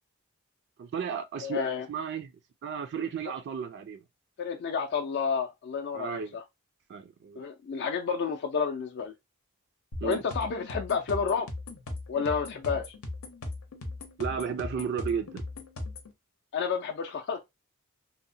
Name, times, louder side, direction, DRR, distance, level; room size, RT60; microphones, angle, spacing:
voice 1, 0.8-1.6 1.9-4.0 5.9-6.4 6.9-7.4 10.0-10.2 14.2-15.4, right 7 dB, 55° right, 0.3 m, -34 dB
voice 2, 1.4-1.9 4.4-6.4 7.4-9.1 10.0-11.5 12.1-12.9 16.5-17.4, left 6 dB, 55° left, 0.4 m, -30 dB
sound 1, 9.9-16.1, left 2 dB, 85° left, 0.7 m, -38 dB
2.8 x 2.0 x 2.6 m
head